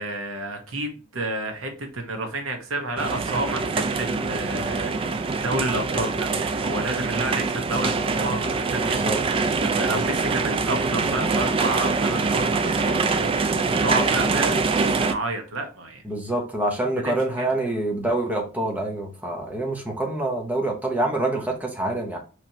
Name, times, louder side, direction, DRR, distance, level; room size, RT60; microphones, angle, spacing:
voice 1, 0.0-9.1 9.6-16.0 17.0-17.5, right 2 dB, 85° right, 1.0 m, -30 dB
sound 1, 3.0-15.1, right 4 dB, 25° right, 0.3 m, -24 dB
voice 2, 8.8-9.2 16.0-22.2, right 2 dB, 10° right, 0.8 m, -26 dB
4.2 x 3.1 x 2.8 m
head